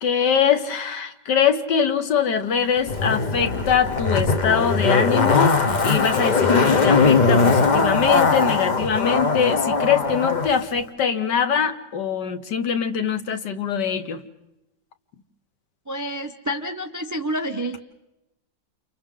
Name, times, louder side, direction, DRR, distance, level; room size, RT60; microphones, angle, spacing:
voice 1, 0.0-14.2, left 7 dB, 60° left, 9 dB, 1.6 m, -23 dB
Zipper (clothing), 2.9-10.5 10.8-10.9, left 4 dB, 45° left, 0.6 m, -20 dB
voice 2, 15.9-17.8, equal, 25° right, 7 dB, 0.4 m, -28 dB
30.0 x 29.5 x 3.8 m, 0.90 s
omnidirectional pair, 2.2 m